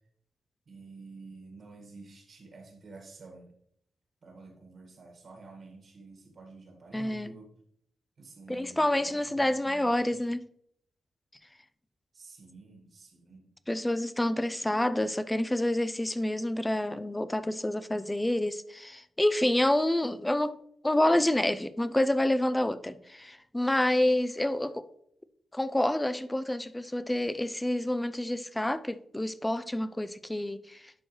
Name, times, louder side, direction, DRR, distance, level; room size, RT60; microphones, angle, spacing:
voice 1, 0.6-3.5 4.2-7.5 8.2-10.3 12.1-13.5, right 3 dB, 50° right, 1.6 m, -50 dB
voice 2, 6.9-7.3 8.5-10.4 13.7-20.6 20.8-24.8 25.5-30.9, left 1 dB, 10° left, 0.4 m, -28 dB
11.0 x 4.5 x 3.1 m
wide cardioid pair, 120°, 0 cm